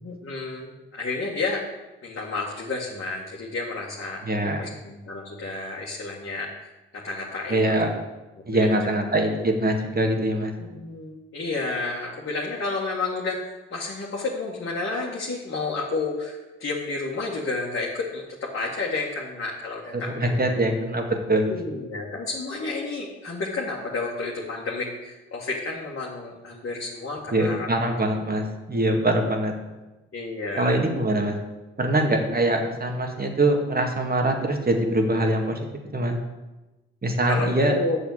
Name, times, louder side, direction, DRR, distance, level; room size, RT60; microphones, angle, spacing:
voice 1, 0.0-1.6 2.0-4.2 4.6-6.5 6.9-8.0 8.4-8.9 10.6-20.3 21.5-28.4 30.1-30.8 32.1-32.2 37.3-38.0, left 3 dB, 45° left, -3 dB, 1.9 m, -31 dB
voice 2, 4.2-4.7 7.5-7.9 8.5-10.5 20.2-21.5 27.3-29.5 30.6-31.4 31.8-35.6 35.9-36.2 37.0-37.8, right 1 dB, 30° right, 3 dB, 2.1 m, -23 dB
6.9 x 6.8 x 8.0 m, 1.1 s
hypercardioid pair, 40°, 31 cm